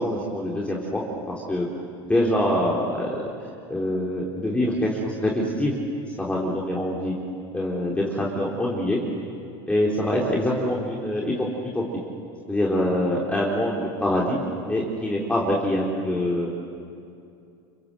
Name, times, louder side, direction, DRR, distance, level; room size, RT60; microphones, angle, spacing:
voice 1, 0.0-1.7 2.0-3.2 3.7-5.7 6.2-7.1 7.5-9.0 9.7-11.8 12.5-14.4 14.6-16.5, left 1 dB, 10° left, -3 dB, 4.2 m, -25 dB
30.0 x 25.5 x 7.8 m, 2.6 s
hypercardioid pair, 100°, 12 cm